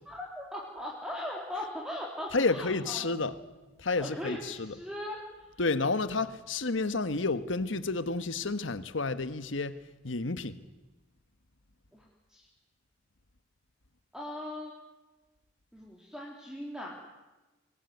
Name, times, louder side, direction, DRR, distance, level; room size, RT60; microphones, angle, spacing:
voice 1, 0.1-3.1 4.0-5.5 11.9-12.5 14.1-14.7 15.7-17.0, left 1 dB, 5° right, 3.5 m, -39 dB
voice 2, 2.3-3.3 3.8-4.7 5.6-9.8 10.0-10.6, left 3 dB, 85° left, 1.4 m, -30 dB
25.0 x 20.0 x 9.7 m
head